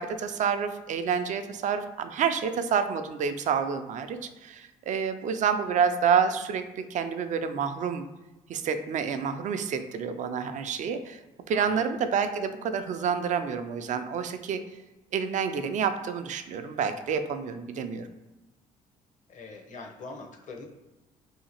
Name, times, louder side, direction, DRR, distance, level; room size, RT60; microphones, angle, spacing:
voice 1, 0.0-8.1 8.5-11.2 11.5-14.6 15.1-18.1, right 6 dB, 50° right, 9 dB, 0.4 m, -28 dB
voice 2, 11.5-11.9 19.3-20.7, left 3 dB, 50° left, 2 dB, 0.7 m, -43 dB
2.8 x 2.4 x 2.8 m, 1.1 s
hypercardioid pair, 55°, 17 cm